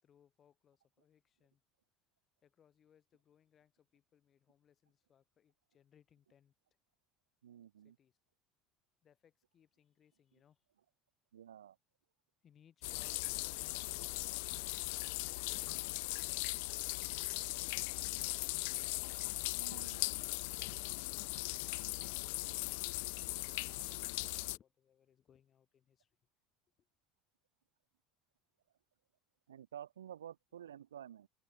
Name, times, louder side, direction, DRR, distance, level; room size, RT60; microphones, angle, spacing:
voice 1, 0.0-1.6 2.4-6.5 7.8-8.1 9.0-10.6 12.4-18.5 19.6-20.2 22.3-26.1 26.8-26.9, left 9 dB, 40° left, 5.9 m, -69 dB
voice 2, 7.4-8.0 10.3-10.4 11.3-11.8 19.5-20.0 29.5-31.3, right 10 dB, 90° right, 2.9 m, -51 dB
sound 1, 12.8-24.6, left 29 dB, 70° left, 0.4 m, -39 dB
hypercardioid pair, 75°, 0 cm